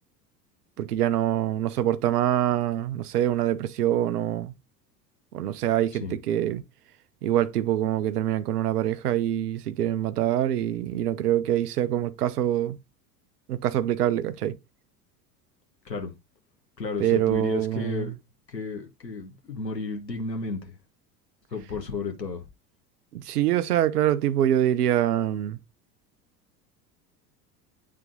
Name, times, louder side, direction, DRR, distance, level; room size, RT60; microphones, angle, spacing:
voice 1, 0.8-4.5 5.3-6.6 7.2-12.8 13.5-14.6 17.0-18.1 23.1-25.6, right 12 dB, 70° right, 0.9 m, -25 dB
voice 2, 16.8-18.1 18.5-20.8 21.5-22.4, left 4 dB, 85° left, 1.3 m, -33 dB
9.3 x 3.7 x 3.8 m
figure-of-eight pair, 75°, 49 cm